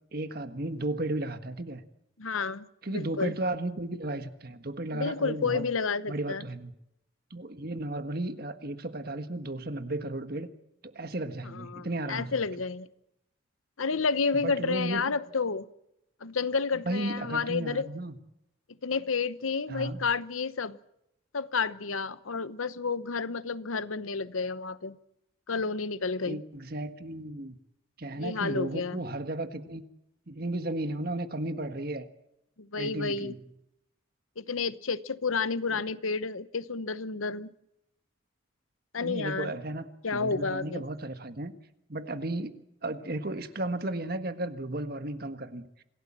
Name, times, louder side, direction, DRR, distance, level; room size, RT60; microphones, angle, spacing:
voice 1, 0.1-1.8 2.8-5.7 6.1-6.7 7.3-10.5 10.8-12.4 14.3-15.0 16.8-18.2 19.7-20.1 26.3-27.6 28.0-29.8 30.3-32.1 32.8-33.4 35.7-35.8 39.0-41.5 41.9-45.6, right 2 dB, 50° right, 1.5 m, -34 dB
voice 2, 2.2-3.3 4.9-6.4 11.5-12.9 13.8-15.7 16.2-17.9 18.8-20.8 21.3-25.0 25.5-26.4 28.2-29.0 32.6-33.3 34.4-37.5 38.9-39.5 40.0-40.8, left 4 dB, 90° left, 0.9 m, -30 dB
26.5 x 16.5 x 7.4 m
head